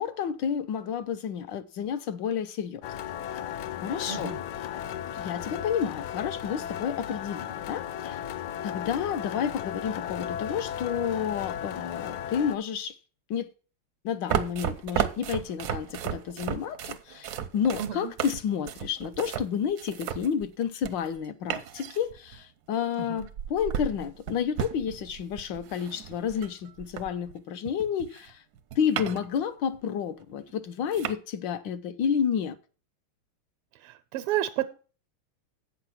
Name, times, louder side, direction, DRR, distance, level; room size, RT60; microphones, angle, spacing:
voice 1, 0.0-2.8 3.8-4.4 5.1-8.2 8.6-13.0 13.3-13.5 14.0-28.4 28.8-32.6, left 8 dB, 70° left, 1.3 m, -30 dB
sound 1, 2.8-12.6, left 10 dB, 85° left, 0.9 m, -35 dB
voice 2, 4.1-4.4 17.8-18.1 23.0-23.3 33.8-34.7, right 12 dB, 90° right, 1.6 m, -31 dB
sound 2, 14.3-21.2 21.5-22.4 23.2-27.4 27.6-29.4 29.7-29.8 30.5-30.6 30.9-31.1, right 9 dB, 70° right, 0.9 m, -34 dB
8.2 x 6.9 x 5.8 m
omnidirectional pair, 2.4 m